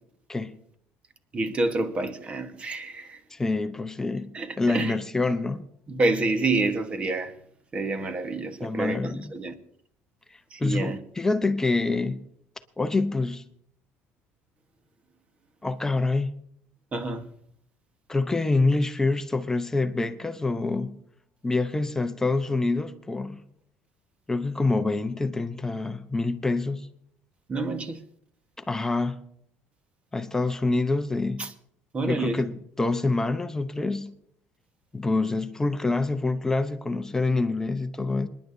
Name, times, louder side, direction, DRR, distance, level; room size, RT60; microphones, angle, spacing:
voice 1, 1.3-3.2 4.3-4.9 5.9-7.3 7.7-9.5 10.5-11.0 16.9-17.2 27.5-28.0 31.4-31.5 31.9-32.4, right 2 dB, 25° right, 1.3 m, -28 dB
voice 2, 3.3-5.6 8.6-9.3 10.6-12.2 12.8-13.4 15.6-16.3 18.1-21.0 21.4-23.4 24.3-26.9 28.7-29.2 30.1-31.5 32.1-34.1 34.9-38.3, left 3 dB, 10° left, 0.7 m, -26 dB
26.5 x 10.5 x 2.7 m
cardioid pair, 130°, 4 cm